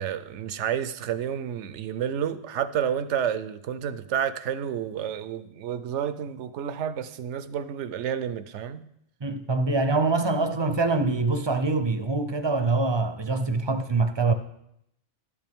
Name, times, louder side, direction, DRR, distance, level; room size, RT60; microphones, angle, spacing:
voice 1, 0.0-8.9, right 9 dB, 90° right, 0.9 m, -30 dB
voice 2, 9.2-14.3, right 3 dB, 40° right, 0.4 m, -24 dB
11.0 x 8.4 x 3.5 m
omnidirectional pair, 1.2 m